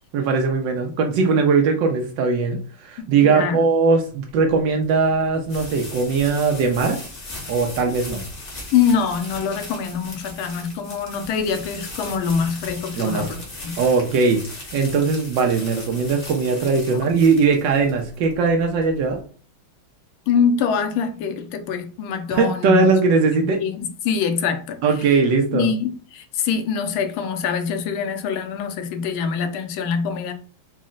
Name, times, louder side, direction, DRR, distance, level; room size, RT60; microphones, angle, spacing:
voice 1, 0.1-7.0 7.5-8.2 12.9-13.3 13.8-14.4 14.7-19.2 22.3-23.6 24.8-25.7, right 4 dB, 75° right, 1.1 m, -20 dB
voice 2, 3.0-3.7 8.7-13.8 16.9-17.1 20.3-22.9 23.3-23.8 24.0-25.2 25.5-30.3, left 6 dB, 80° left, 1.4 m, -24 dB
sound 1, 4.5-19.2, left 2 dB, 40° left, 0.8 m, -38 dB
4.1 x 2.1 x 3.7 m
omnidirectional pair, 2.3 m